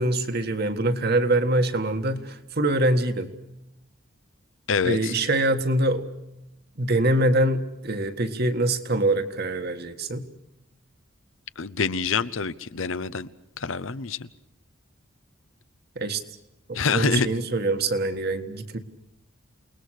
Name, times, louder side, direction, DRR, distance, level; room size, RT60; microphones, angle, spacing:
voice 1, 0.0-3.3 4.8-6.1 6.8-10.3 16.0-16.2 16.7-18.8, right 1 dB, 50° right, 1.7 m, -24 dB
voice 2, 4.7-5.1 11.6-13.3 13.6-14.3 16.7-17.3, left 5 dB, 75° left, 0.8 m, -26 dB
29.0 x 20.0 x 6.5 m
head